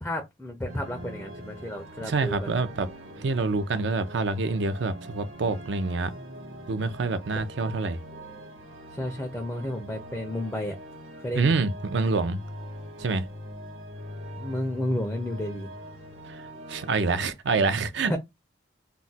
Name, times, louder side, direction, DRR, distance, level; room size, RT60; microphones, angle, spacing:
voice 1, 0.0-2.6 7.4-7.5 9.0-10.8 11.2-11.5 14.3-15.7 18.1-18.2, left 1 dB, 10° left, 0.4 m, -32 dB
sound 1, 0.7-17.3, equal, 90° right, 0.9 m, -42 dB
voice 2, 2.0-2.9 3.2-6.1 6.7-8.0 11.3-12.4 13.0-13.3 16.3-16.4 16.7-18.2, right 4 dB, 65° right, 0.4 m, -26 dB
2.3 x 2.1 x 3.9 m
head